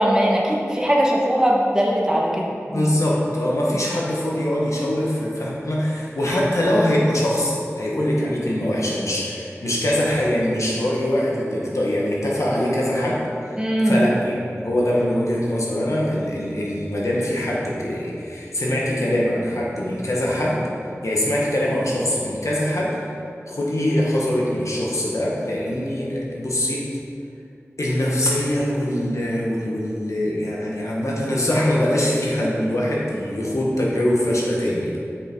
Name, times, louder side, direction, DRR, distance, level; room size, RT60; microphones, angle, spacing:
voice 1, 0.0-2.9 13.6-14.0, equal, 15° right, -3 dB, 1.4 m, -20 dB
voice 2, 2.7-13.2 13.8-20.6 21.0-23.1 23.5-26.8 27.8-34.9, left 1 dB, 80° left, -4 dB, 1.5 m, -23 dB
7.7 x 5.7 x 4.7 m, 2.6 s
wide cardioid pair, 40°, 5 cm